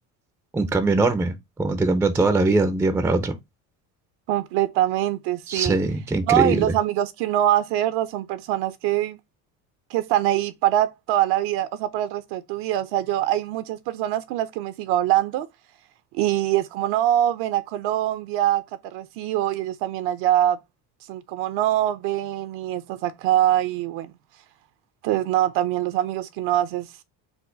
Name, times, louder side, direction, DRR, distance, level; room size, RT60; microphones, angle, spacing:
voice 1, 0.5-3.3 5.5-6.7, right 3 dB, 5° right, 0.3 m, -21 dB
voice 2, 4.3-5.8 6.3-9.2 9.9-15.5 16.1-20.6 21.1-24.1 25.0-26.9, right 13 dB, 70° right, 0.6 m, -23 dB
4.3 x 2.4 x 3.8 m
cardioid pair, 135°, 42 cm